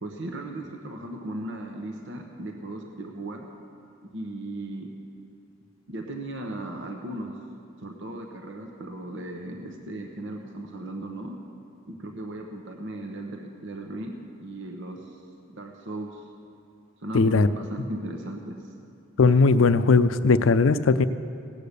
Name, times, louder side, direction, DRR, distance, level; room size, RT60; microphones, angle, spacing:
voice 1, 0.0-3.5 4.1-4.9 5.9-7.3 7.8-11.4 11.9-15.2 15.5-16.2 17.0-18.6, right 1 dB, 60° right, 3 dB, 1.0 m, -36 dB
voice 2, 17.1-17.5 19.2-21.1, left 4 dB, 70° left, 13 dB, 0.5 m, -18 dB
16.5 x 8.5 x 6.7 m, 2.4 s
head